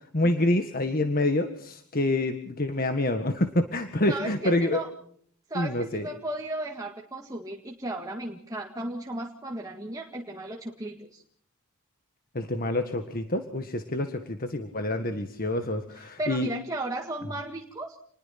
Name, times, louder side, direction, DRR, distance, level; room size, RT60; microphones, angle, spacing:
voice 1, 0.1-4.8 5.5-6.1 12.3-16.5, left 1 dB, 40° left, 7 dB, 1.7 m, -27 dB
voice 2, 4.1-4.9 5.5-11.2 15.9-18.0, right 2 dB, 15° right, 1 dB, 1.9 m, -35 dB
29.0 x 21.0 x 5.9 m, 0.64 s
head